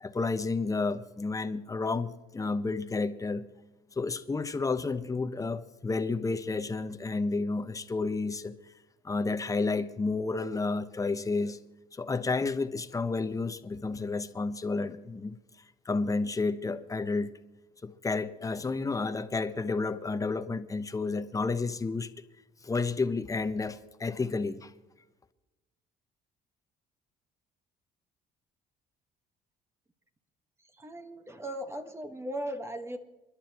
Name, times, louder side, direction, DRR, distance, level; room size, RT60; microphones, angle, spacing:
voice 1, 0.0-3.4 4.0-8.6 9.0-11.6 11.9-15.3 15.8-17.3 17.8-22.1 22.6-24.7, left 3 dB, 20° left, 11 dB, 1.0 m, -31 dB
voice 2, 30.8-33.0, right 1 dB, 15° right, 7 dB, 1.5 m, -37 dB
29.0 x 11.5 x 3.0 m, 1.0 s
cardioid pair, 110°, 17 cm